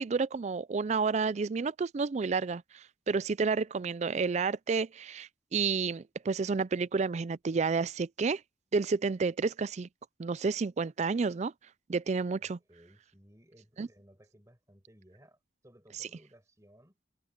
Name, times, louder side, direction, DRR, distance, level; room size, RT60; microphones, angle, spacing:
voice 1, 0.0-8.4 8.7-9.9 10.2-11.5 11.9-12.6 13.8-13.9, right 4 dB, 40° right, 0.4 m, -30 dB
voice 2, 12.4-17.0, equal, 15° right, 6.3 m, -60 dB
head